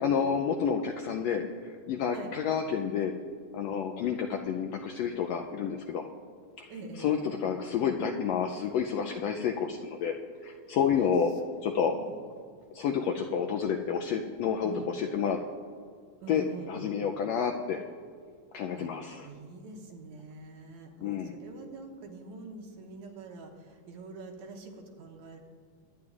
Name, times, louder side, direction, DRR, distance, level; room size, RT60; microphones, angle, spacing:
voice 1, 0.0-3.1 3.5-6.1 6.6-10.1 10.4-11.3 11.6-11.9 12.7-15.4 16.3-17.8 18.5-19.3 21.0-21.4, left 7 dB, 85° left, 3 dB, 1.5 m, -30 dB
voice 2, 6.7-7.1 11.7-12.2 14.6-14.9 16.2-17.0 18.8-18.9 19.2-25.4, right 3 dB, 70° right, 2 dB, 2.4 m, -45 dB
23.0 x 9.5 x 2.4 m, 2.1 s
omnidirectional pair, 3.5 m